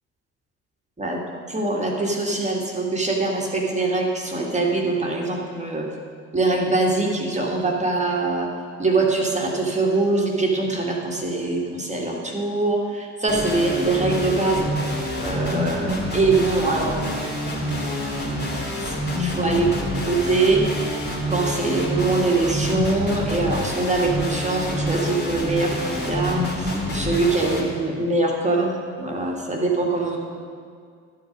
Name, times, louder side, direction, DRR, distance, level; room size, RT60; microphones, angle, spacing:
voice 1, 1.0-5.9 6.3-8.5 8.8-14.7 15.2-17.0 18.8-20.6 21.3-30.2, right 3 dB, 15° right, -1 dB, 1.9 m, -23 dB
sound 1, 13.3-27.6, left 1 dB, 25° left, 2.6 m, -27 dB
12.5 x 7.9 x 5.2 m, 2.2 s
figure-of-eight pair, 55°, 43 cm